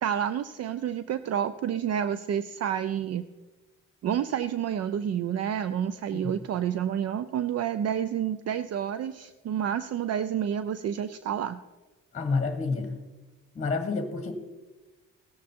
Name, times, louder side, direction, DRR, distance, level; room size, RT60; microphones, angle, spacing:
voice 1, 0.0-3.3 4.0-11.6, right 9 dB, 55° right, 13 dB, 0.5 m, -29 dB
voice 2, 12.1-13.0 13.5-14.3, left 4 dB, 25° left, 7 dB, 1.4 m, -29 dB
17.5 x 7.2 x 4.4 m, 1.2 s
cardioid pair, 90°, 30 cm